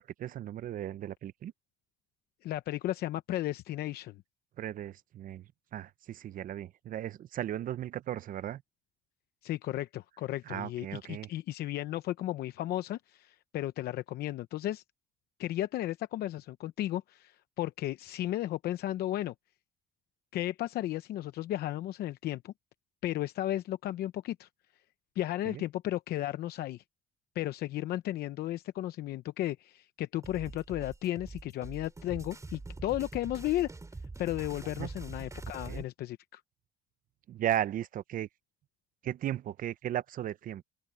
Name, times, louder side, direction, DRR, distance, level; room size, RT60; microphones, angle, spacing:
voice 1, 0.0-1.5 4.6-8.6 10.5-11.3 25.5-25.6 34.8-34.9 35.7-35.8 37.3-38.3 39.0-40.6, right 11 dB, 55° right, 0.7 m, -36 dB
voice 2, 2.4-4.2 9.4-14.8 15.4-19.3 20.3-22.5 23.0-24.5 25.2-26.8 27.3-33.7 34.2-36.4, left 14 dB, 70° left, 0.8 m, -34 dB
sound 1, 30.2-35.8, right 3 dB, 20° right, 4.9 m, -44 dB
open air
cardioid pair, 110°, 17 cm